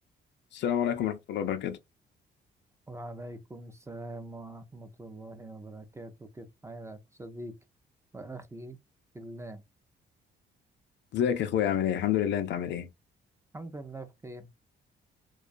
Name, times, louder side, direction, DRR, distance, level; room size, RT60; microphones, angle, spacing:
voice 1, 0.5-1.8 11.1-12.9, left 9 dB, 65° left, 0.4 m, -28 dB
voice 2, 2.9-7.5 8.1-8.8 9.1-9.6 13.5-14.5, right 1 dB, 15° right, 0.4 m, -43 dB
2.3 x 2.3 x 2.4 m
cardioid pair, 90°, 20 cm